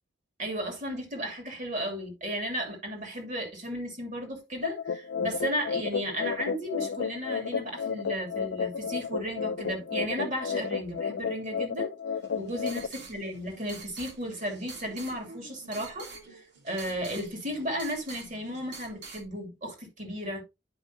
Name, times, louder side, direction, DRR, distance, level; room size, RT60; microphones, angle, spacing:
voice 1, 0.4-11.9 12.4-20.4, equal, 45° right, 2.7 m, -34 dB
sound 1, 4.6-12.9, left 6 dB, 75° left, 0.4 m, -32 dB
sound 2, 12.2-19.2, right 4 dB, 65° right, 1.8 m, -47 dB
10.5 x 5.2 x 2.8 m
head